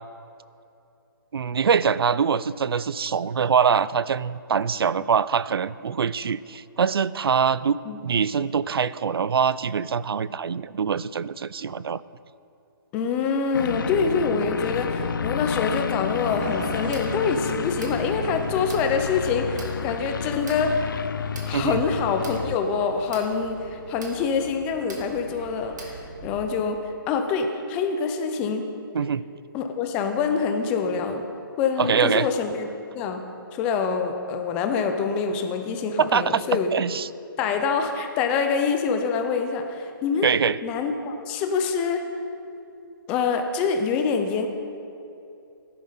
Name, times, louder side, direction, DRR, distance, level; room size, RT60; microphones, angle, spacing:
voice 1, 1.3-7.8 8.0-12.0 21.5-21.8 28.9-29.2 31.8-32.3 36.0-37.1 40.2-40.6, right 7 dB, 85° right, 18 dB, 0.4 m, -23 dB
voice 2, 12.9-21.0 21.5-28.7 29.5-31.2 31.6-33.2 33.5-36.7 37.4-40.3 40.6-42.1 43.1-44.5, left 5 dB, 10° left, 5 dB, 0.4 m, -25 dB
sound 1, 13.5-22.6, left 6 dB, 60° left, 0.6 m, -30 dB
sound 2, 16.2-26.4, right 2 dB, 50° right, 2.2 m, -40 dB
17.5 x 11.0 x 3.9 m, 2.7 s
hypercardioid pair, 170°, 12 cm